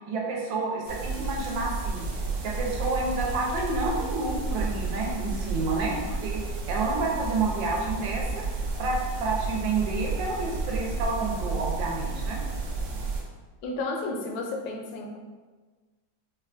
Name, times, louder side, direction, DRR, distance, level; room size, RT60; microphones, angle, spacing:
voice 1, 0.1-2.0 2.4-6.4 6.7-8.4 8.8-12.4, right 3 dB, 85° right, -1 dB, 1.4 m, -29 dB
sound 1, 0.9-13.2, right 3 dB, 70° right, 0.9 m, -32 dB
voice 2, 13.6-15.2, left 2 dB, 70° left, 1 dB, 1.1 m, -32 dB
4.7 x 2.2 x 2.4 m, 1.3 s
omnidirectional pair, 2.0 m